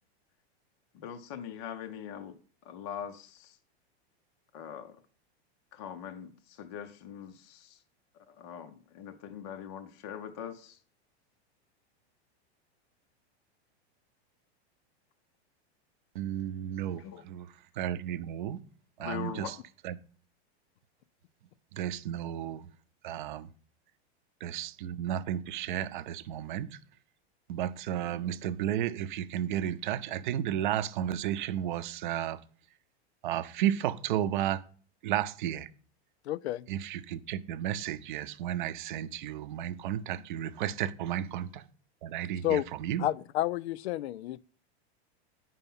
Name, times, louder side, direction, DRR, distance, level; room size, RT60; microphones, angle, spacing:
voice 1, 0.9-2.4 2.6-3.6 4.5-5.0 5.7-7.8 8.3-10.8 17.0-17.2 19.0-19.5, left 8 dB, 25° left, 0.5 m, -42 dB
voice 2, 16.1-17.5 17.8-18.6 19.0-19.5 19.8-20.0 21.7-22.6 23.0-23.5 24.4-26.8 27.5-32.4 33.2-34.6 35.0-35.7 36.7-41.6 42.0-43.1, right 11 dB, 50° right, 0.6 m, -33 dB
voice 3, 36.3-36.6 42.4-42.6 43.0-44.4, left 14 dB, 75° left, 0.5 m, -30 dB
9.0 x 5.6 x 5.4 m
supercardioid pair, 175°, 33 cm